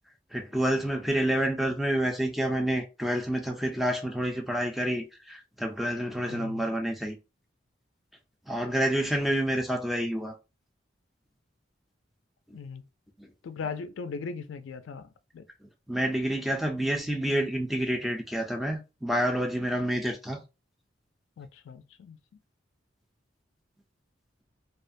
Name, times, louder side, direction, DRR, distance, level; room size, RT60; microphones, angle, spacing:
voice 1, 0.3-7.2 8.5-10.3 12.5-12.6 13.2-13.3 15.6-20.4, right 1 dB, ahead, 0.3 m, -28 dB
voice 2, 6.3-6.6 12.5-12.8 13.4-15.5 21.4-22.2, left 5 dB, 80° left, 0.3 m, -39 dB
2.3 x 2.1 x 2.5 m
head